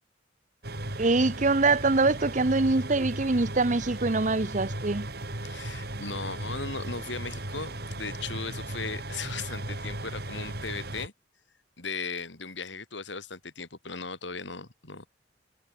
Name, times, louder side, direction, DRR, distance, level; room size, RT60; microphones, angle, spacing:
sound 1, 0.6-11.1, right 1 dB, 55° right, 5.1 m, -36 dB
voice 1, 1.0-5.1, right 3 dB, 40° right, 1.0 m, -24 dB
voice 2, 5.4-11.1 11.8-15.1, left 4 dB, 75° left, 4.1 m, -37 dB
head